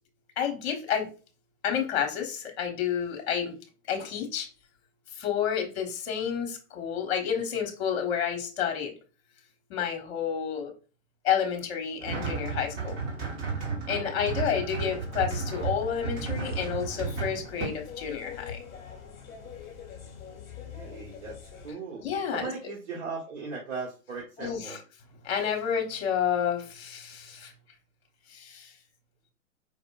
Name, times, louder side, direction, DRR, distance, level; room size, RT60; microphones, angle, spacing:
voice 1, 0.4-1.1 1.6-3.5 3.9-4.5 5.2-8.9 9.7-10.7 11.2-13.0 13.9-18.6 22.0-22.5 24.4-24.8 25.2-27.5 28.3-28.7, left 8 dB, 50° left, 3 dB, 1.2 m, -30 dB
sound 1, 12.0-17.7, right 4 dB, 30° right, 1.1 m, -33 dB
sound 2, 14.8-21.7, left 7 dB, 25° left, 1.2 m, -45 dB
voice 2, 20.6-21.4 21.6-22.0 22.3-24.8, right 4 dB, 55° right, -5 dB, 1.3 m, -38 dB
4.6 x 2.5 x 2.3 m, 0.35 s
hypercardioid pair, 120°, 40 cm